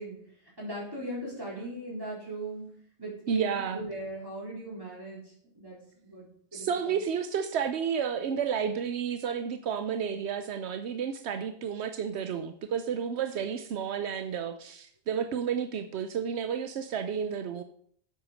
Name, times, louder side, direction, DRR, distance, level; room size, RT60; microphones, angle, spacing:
voice 1, 0.0-7.0, right 1 dB, 20° right, -5 dB, 4.3 m, -39 dB
voice 2, 3.3-3.8 6.5-17.6, right 7 dB, 80° right, 9 dB, 0.9 m, -31 dB
7.9 x 6.5 x 6.3 m, 0.63 s
omnidirectional pair, 1.1 m